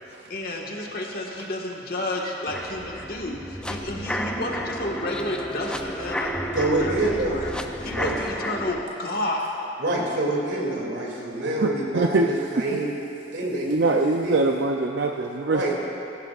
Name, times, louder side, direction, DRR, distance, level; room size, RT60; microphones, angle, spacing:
voice 1, 0.3-7.5 7.8-9.5, left 1 dB, 55° left, -1 dB, 1.6 m, -31 dB
sound 1, 2.5-8.8, equal, 5° left, 0.5 m, -31 dB
voice 2, 6.5-7.4 7.9-8.2 9.8-12.9 13.3-14.4 15.5-15.7, right 2 dB, 80° right, -2 dB, 2.6 m, -27 dB
voice 3, 11.1-12.3 12.7-12.8 13.4-15.7, right 3 dB, 65° right, 2 dB, 0.5 m, -24 dB
19.5 x 15.5 x 2.5 m, 2.9 s
head